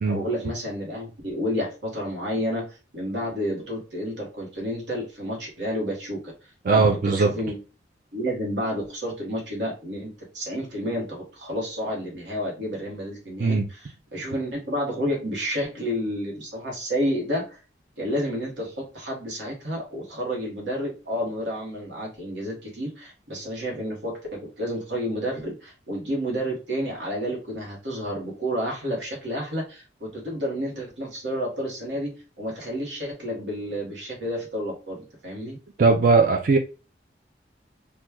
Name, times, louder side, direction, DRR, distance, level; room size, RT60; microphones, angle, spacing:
voice 1, 0.1-7.6 8.1-17.6 18.0-35.6, equal, 75° right, 1.1 m, -30 dB
voice 2, 6.7-7.3 13.4-13.6 35.8-36.6, right 4 dB, 50° right, 0.4 m, -19 dB
3.0 x 2.2 x 3.4 m
head